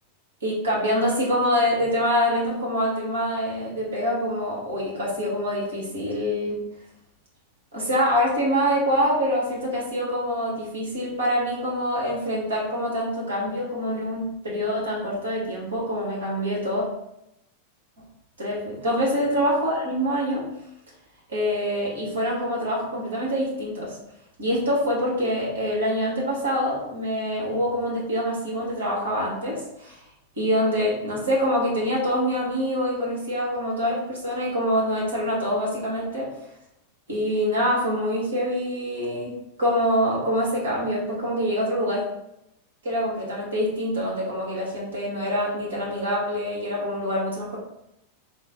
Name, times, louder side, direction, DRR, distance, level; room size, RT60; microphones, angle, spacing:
voice 1, 0.4-6.6 7.7-16.9 18.4-20.5 21.3-24.0 24.4-30.0 30.4-36.3 37.1-42.0 42.8-47.6, equal, 70° right, -4 dB, 1.2 m, -25 dB
3.7 x 2.0 x 3.6 m, 0.84 s
figure-of-eight pair, 90°, 0 cm